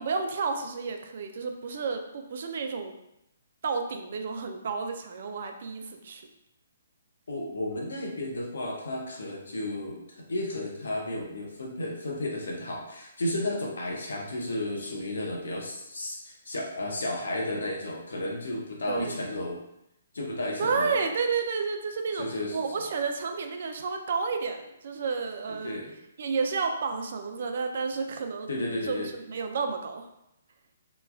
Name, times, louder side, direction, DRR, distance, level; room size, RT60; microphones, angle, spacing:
voice 1, 0.0-2.9 3.6-6.3 18.9-19.2 20.6-22.2 22.5-25.8 26.2-28.5 28.8-30.1, right 5 dB, 60° right, 5 dB, 0.3 m, -31 dB
voice 2, 7.3-19.6 20.1-20.9 22.1-22.6 25.5-25.9 28.5-29.1, left 1 dB, 80° left, -1 dB, 0.7 m, -33 dB
3.0 x 2.3 x 2.2 m, 0.83 s
hypercardioid pair, 145°, 0 cm